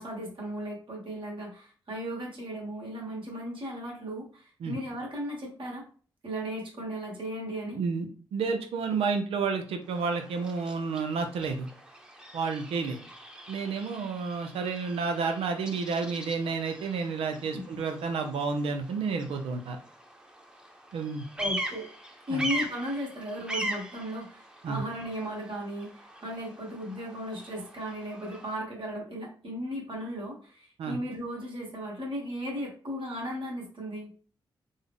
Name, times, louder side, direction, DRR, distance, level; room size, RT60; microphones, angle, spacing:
voice 1, 0.0-5.8 6.2-7.8 17.5-17.8 21.4-21.9 22.3-25.9 26.2-34.1, equal, 60° right, -2 dB, 1.5 m, -36 dB
voice 2, 7.7-11.7 12.3-13.0 13.5-19.8 20.9-21.2 22.3-22.4 24.6-24.8 30.8-31.0, right 5 dB, 85° right, 5 dB, 0.5 m, -30 dB
Bird vocalization bird call bird song, 9.8-28.6, right 1 dB, 10° right, 0.9 m, -41 dB
3.5 x 2.0 x 3.6 m, 0.41 s
supercardioid pair, 50°, 10 cm